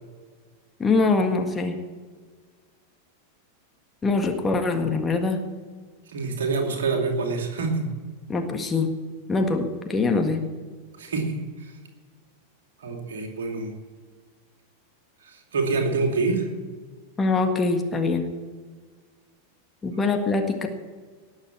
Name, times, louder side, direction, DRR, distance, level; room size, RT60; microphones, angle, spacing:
voice 1, 0.8-1.8 4.0-5.4 8.3-8.9 9.3-10.5 17.2-18.2 19.8-20.7, left 3 dB, 15° left, 4 dB, 1.7 m, -23 dB
voice 2, 6.1-7.9 11.0-11.7 12.8-13.7 15.5-16.5 19.9-20.0, right 4 dB, 60° right, 2 dB, 2.7 m, -26 dB
19.0 x 7.4 x 7.3 m, 1.5 s
figure-of-eight pair, 90°, 0 cm